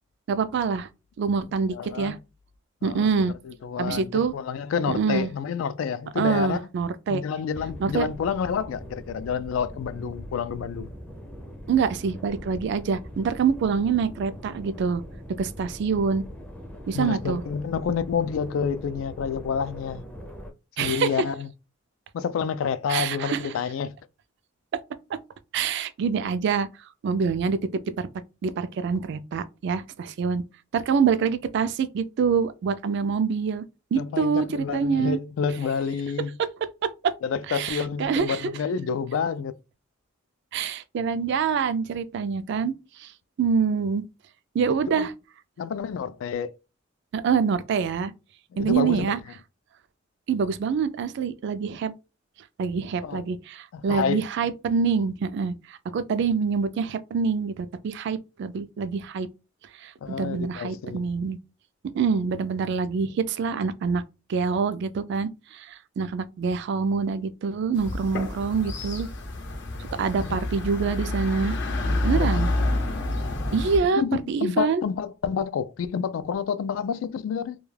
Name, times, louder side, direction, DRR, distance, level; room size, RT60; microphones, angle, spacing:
voice 1, 0.3-0.9 1.2-2.2 2.8-3.3 3.8-4.3 4.9-5.3 6.2-7.2 7.8-8.1 11.7-15.0 15.4-16.2 16.9-17.4 20.8-21.1 22.9-23.4 25.5-26.7 27.0-27.6 28.0-28.1 28.4-30.4 30.7-33.6 33.9-35.2 37.0-37.1 37.5-38.5 40.5-42.7 43.0-43.1 43.4-44.0 44.5-45.1 47.1-48.1 48.6-49.2 50.3-51.9 52.6-59.3 59.8-61.4 61.9-64.0 64.3-69.1 70.0-71.5 72.0-72.5 73.5-74.0 74.3-74.8, right 5 dB, 60° right, 0.3 m, -25 dB
voice 2, 1.7-2.2 2.8-3.1 3.4-6.7 7.1-10.9 16.9-20.0 20.8-21.5 22.1-23.9 33.9-36.3 37.2-39.5 44.7-45.1 45.6-46.5 48.5-49.2 53.0-53.2 53.7-54.2 60.0-61.0 70.2-70.4 71.9-72.4 73.9-77.6, left 6 dB, 85° left, 0.3 m, -29 dB
sound 1, 7.5-20.5, equal, 5° left, 0.4 m, -41 dB
sound 2, 67.8-73.8, left 1 dB, 60° left, 0.7 m, -28 dB
2.2 x 2.2 x 3.2 m
head